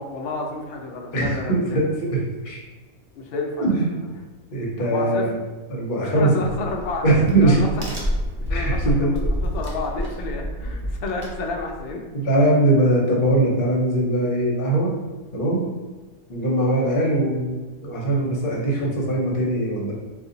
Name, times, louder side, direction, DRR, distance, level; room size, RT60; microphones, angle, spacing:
voice 1, 0.0-1.8 3.2-4.0 4.8-5.3 6.0-7.8 8.4-12.0, left 3 dB, 65° left, 2 dB, 0.6 m, -31 dB
voice 2, 1.1-2.2 2.4-2.6 3.3-3.9 4.5-5.4 5.7-6.3 7.0-7.6 8.5-9.1 12.1-14.9 15.3-15.6 16.3-19.9, right 1 dB, 45° left, -3 dB, 0.9 m, -21 dB
Crack, 6.5-11.9, equal, 45° right, 0.6 m, -28 dB
2.7 x 2.5 x 3.8 m, 1.2 s
omnidirectional pair, 1.5 m